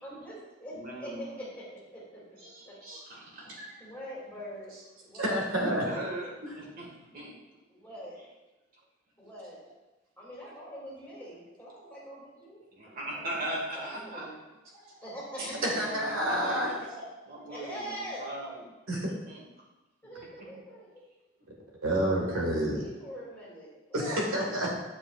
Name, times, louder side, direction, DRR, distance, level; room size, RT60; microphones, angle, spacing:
voice 1, 0.0-2.2 2.7-2.8 3.1-3.2 3.8-4.7 5.0-5.4 7.1-7.2 7.7-8.2 9.2-9.6 10.2-13.4 13.7-14.4 15.0-16.0 16.5-18.3 20.0-21.0 22.1-24.2, equal, 10° left, -7 dB, 2.5 m, -44 dB
voice 2, 0.7-1.4 2.4-3.8 5.5-7.3 11.8-12.0 12.7-14.3 14.7-15.0 15.4-16.8 17.3-18.6 18.9-19.4, right 1 dB, 40° right, -2 dB, 1.7 m, -40 dB
voice 3, 5.2-5.8 15.6-16.7 18.9-19.1 21.8-22.8 23.9-24.7, right 1 dB, 85° right, -1 dB, 1.7 m, -28 dB
8.7 x 7.4 x 2.4 m, 1.1 s
head